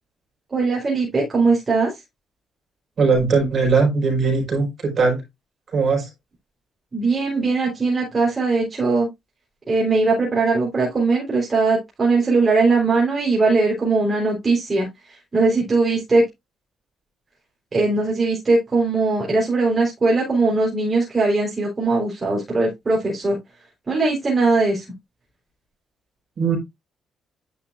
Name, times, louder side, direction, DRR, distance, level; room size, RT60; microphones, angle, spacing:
voice 1, 0.5-1.9 6.9-9.1 9.7-14.9 15.3-16.2 17.7-23.4 23.9-24.8, right 3 dB, 30° right, 3.9 m, -20 dB
voice 2, 3.0-5.2 5.7-6.1 26.4-26.6, right 4 dB, 50° right, 5.0 m, -19 dB
9.9 x 6.3 x 2.5 m
cardioid pair, 90°, 0 cm